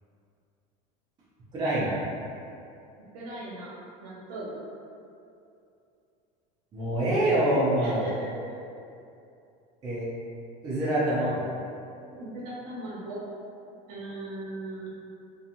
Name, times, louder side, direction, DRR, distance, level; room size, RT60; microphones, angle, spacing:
voice 1, 1.5-2.0 6.7-8.1 9.8-10.1 10.6-11.5, right 1 dB, 20° right, -9 dB, 0.5 m, -25 dB
voice 2, 3.1-3.7 4.0-4.5 7.8-8.1 8.5-8.6 12.1-13.2 13.9-14.9, right 2 dB, 70° right, -6 dB, 0.8 m, -38 dB
2.8 x 2.3 x 2.5 m, 2.6 s
cardioid pair, 165°, 19 cm